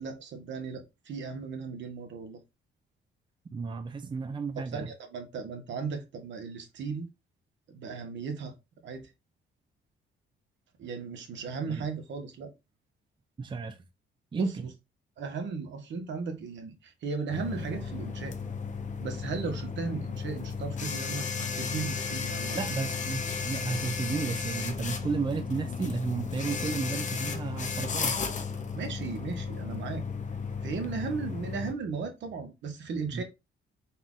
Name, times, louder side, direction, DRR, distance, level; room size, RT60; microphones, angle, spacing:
voice 1, 0.0-2.4 4.7-7.1 7.7-8.5 8.8-9.1 10.8-12.5 14.3-14.5 15.2-18.4 19.0-22.7 28.7-30.0 30.6-33.2, right 5 dB, 65° right, 1.1 m, -36 dB
voice 2, 3.5-4.9 11.7-11.8 13.4-13.8 14.3-14.7 22.5-28.2 33.1-33.2, right 5 dB, 25° right, 0.5 m, -33 dB
sound 1, 17.3-31.7, left 5 dB, 40° left, 0.7 m, -34 dB
4.3 x 2.3 x 3.6 m
cardioid pair, 90°, 20 cm